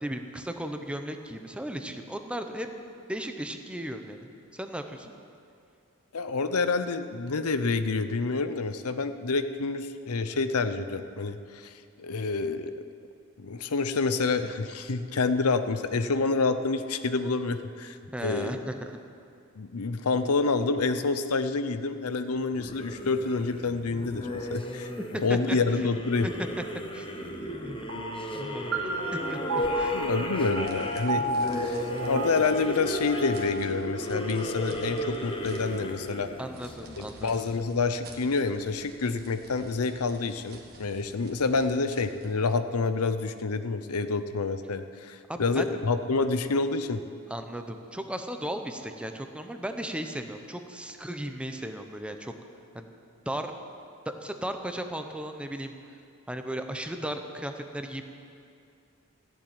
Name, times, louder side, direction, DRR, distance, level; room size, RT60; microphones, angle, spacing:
voice 1, 0.0-2.7 3.1-5.1 18.1-19.0 25.5-25.6 26.2-26.5 26.9-27.8 28.3-30.3 36.4-37.5 45.3-45.7 47.3-52.3 52.7-52.9 53.3-53.5 54.2-55.7 56.3-58.0, right 1 dB, 5° right, 6 dB, 0.8 m, -36 dB
voice 2, 6.1-12.7 13.4-18.6 19.6-24.9 25.2-26.3 29.9-36.3 37.0-47.0, left 4 dB, 85° left, 10 dB, 0.7 m, -28 dB
sound 1, 22.5-37.4, equal, 25° left, 1.1 m, -35 dB
sound 2, 27.9-36.7, right 1 dB, 70° right, 2.6 m, -34 dB
sound 3, 29.5-42.4, right 2 dB, 45° right, 1.7 m, -52 dB
14.5 x 7.3 x 9.9 m, 2.4 s
head